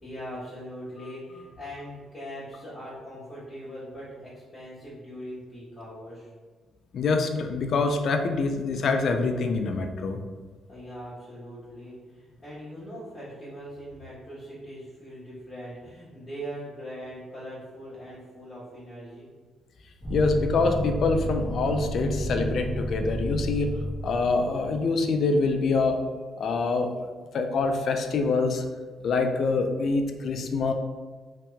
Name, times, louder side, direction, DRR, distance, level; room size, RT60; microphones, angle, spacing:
voice 1, 0.0-6.3 10.7-19.3, equal, 25° left, -11 dB, 1.4 m, -41 dB
voice 2, 6.9-10.2 20.1-23.8 24.0-26.0 26.4-27.0 27.3-28.6 29.0-30.7, left 3 dB, 60° left, 5 dB, 0.4 m, -25 dB
sound 1, 20.0-24.6, right 1 dB, 5° right, 1.2 m, -31 dB
2.9 x 2.8 x 3.3 m, 1.4 s
cardioid pair, 90°, 0 cm